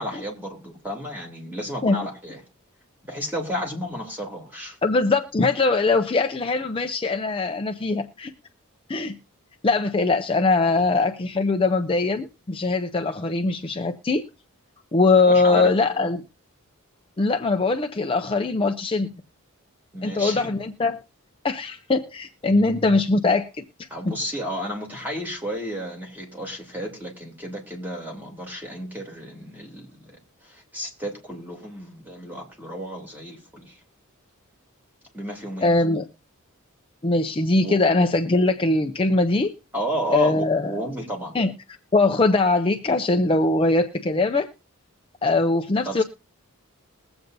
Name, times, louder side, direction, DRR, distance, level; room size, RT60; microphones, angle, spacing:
voice 1, 0.0-2.4 3.0-4.8 15.2-16.1 19.9-20.5 23.9-30.2 30.4-33.8 35.1-35.7 37.6-37.8 39.7-41.4 45.8-46.0, equal, 10° right, 2.8 m, -32 dB
voice 2, 4.8-8.3 8.9-9.1 9.6-14.2 14.9-16.2 17.2-19.1 20.0-21.0 21.4-23.6 35.6-36.0 37.0-39.5 40.1-40.7 41.3-41.5 41.9-44.5 45.2-46.0, left 3 dB, 25° left, 0.5 m, -21 dB
21.5 x 7.9 x 2.6 m
head